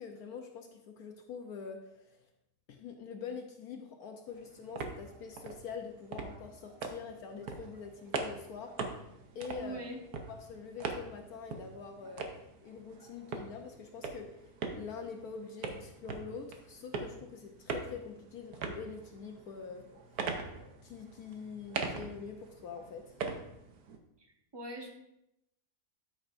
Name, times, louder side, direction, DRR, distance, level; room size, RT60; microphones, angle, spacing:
voice 1, 0.0-2.2 2.7-8.7 9.3-9.8 10.3-12.3 12.6-19.9 20.8-23.2, left 6 dB, 70° left, 3 dB, 1.2 m, -45 dB
sound 1, 4.3-24.0, right 4 dB, 70° right, 1.4 m, -42 dB
voice 2, 9.6-10.0 24.2-24.9, right 1 dB, 15° right, 0 dB, 1.2 m, -42 dB
13.0 x 6.4 x 2.6 m, 0.85 s
omnidirectional pair, 1.7 m